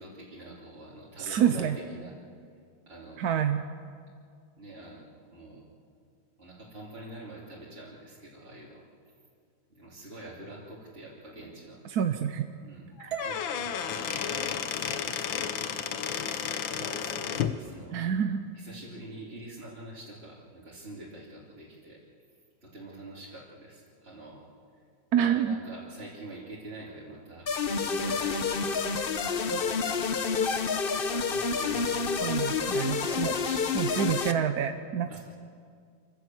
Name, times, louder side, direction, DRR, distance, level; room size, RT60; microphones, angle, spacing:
voice 1, 0.0-2.1 2.9-3.2 4.6-5.6 6.4-8.8 9.7-11.8 12.6-12.9 13.2-15.5 16.1-18.0 18.5-22.0 22.6-24.5 25.2-28.8 29.5-30.6 31.1-32.4 32.9-33.8 35.1-35.2, right 1 dB, 30° right, -7 dB, 3.4 m, -45 dB
voice 2, 1.2-1.7 3.2-3.6 11.8-12.4 13.0-13.1 17.9-18.4 25.1-25.6 29.5-29.6 32.2-33.3 33.7-35.2, right 9 dB, 60° right, 7 dB, 1.1 m, -27 dB
Squeak / Wood, 13.0-17.6, left 8 dB, 75° left, 1.7 m, -32 dB
sound 1, 13.1-17.2, right 10 dB, 80° right, 2.0 m, -46 dB
sound 2, 27.5-34.3, left 5 dB, 55° left, 0.6 m, -29 dB
27.0 x 15.5 x 7.8 m, 2.2 s
omnidirectional pair, 2.1 m